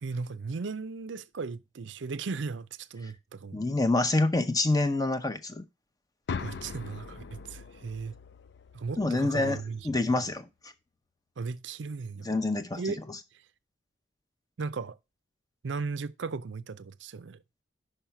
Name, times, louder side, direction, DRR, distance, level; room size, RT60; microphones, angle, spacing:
voice 1, 0.0-3.6 6.4-8.1 8.7-10.3 11.4-12.3 12.8-13.0 13.3-13.4 14.6-15.0 15.6-17.4, right 4 dB, 70° right, 0.5 m, -36 dB
voice 2, 3.5-5.7 9.0-9.6 9.8-10.5 12.2-12.8, left 2 dB, 20° left, 0.6 m, -26 dB
sound 1, 6.3-10.2, left 5 dB, 65° left, 0.4 m, -41 dB
5.6 x 5.6 x 5.8 m
head